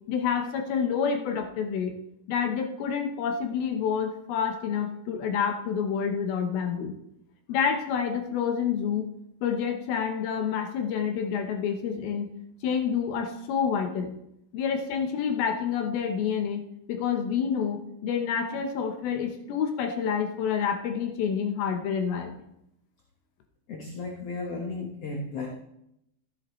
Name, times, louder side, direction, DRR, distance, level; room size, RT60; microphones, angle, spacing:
voice 1, 0.1-2.0 2.3-7.0 7.5-9.1 9.4-12.3 12.6-14.1 14.5-22.4, left 7 dB, 80° left, 5 dB, 2.9 m, -28 dB
voice 2, 23.7-25.5, left 3 dB, 55° left, 0 dB, 1.8 m, -34 dB
14.0 x 10.5 x 3.1 m, 0.77 s
omnidirectional pair, 4.3 m